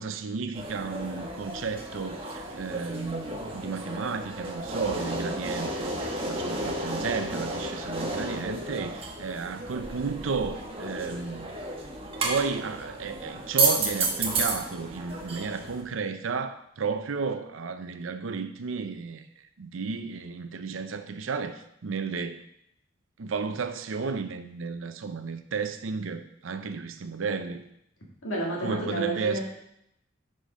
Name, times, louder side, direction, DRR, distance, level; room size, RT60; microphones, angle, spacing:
voice 1, 0.0-11.5 12.2-22.4 23.2-27.6 28.6-29.4, right 5 dB, 85° right, 0.6 m, -33 dB
sound 1, 0.5-15.8, right 2 dB, 30° right, 1.2 m, -32 dB
voice 2, 28.2-29.4, right 1 dB, 80° left, 2.0 m, -31 dB
7.7 x 5.1 x 5.0 m
head